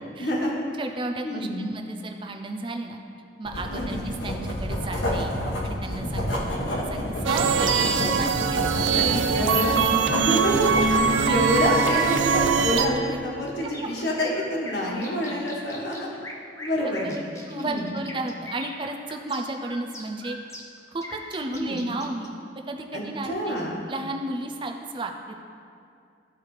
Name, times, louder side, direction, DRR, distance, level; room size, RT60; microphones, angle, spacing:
voice 1, 0.2-0.6 1.2-1.7 3.7-4.0 8.9-16.1 16.6-17.2 17.5-17.9 21.5-21.9 22.9-23.0 23.3-23.8, equal, 60° left, -3 dB, 1.5 m, -27 dB
voice 2, 0.8-3.0 3.4-5.3 5.6-6.5 6.8-10.2 10.9-11.4 16.8-17.1 17.5-20.4 20.9-22.3 22.7-23.6 23.9-25.4, right 2 dB, 25° right, 4 dB, 0.4 m, -33 dB
Writing, 3.5-12.8, left 1 dB, 85° left, 1.4 m, -29 dB
sound 1, 7.2-12.9, right 6 dB, 85° right, 0.5 m, -23 dB
sound 2, 13.6-22.3, left 1 dB, 15° left, 0.7 m, -41 dB
13.5 x 4.6 x 3.3 m, 2.4 s
head